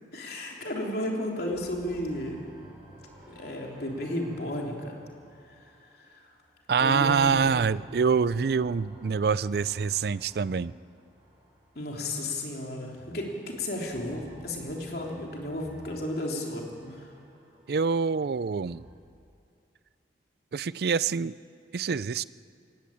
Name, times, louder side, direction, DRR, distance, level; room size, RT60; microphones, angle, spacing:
voice 1, 0.1-2.4 3.3-5.1 5.5-5.6 6.0-6.2 6.8-7.4 11.7-17.1, left 1 dB, 55° left, 0 dB, 3.4 m, -33 dB
sound 1, 1.5-6.5 6.8-12.1 12.9-18.9, equal, 30° right, 7.0 m, -52 dB
voice 2, 6.7-10.7 17.7-18.8 20.5-21.3 21.7-22.2, right 5 dB, 55° right, 19 dB, 0.4 m, -25 dB
20.0 x 16.5 x 8.6 m, 2.4 s
head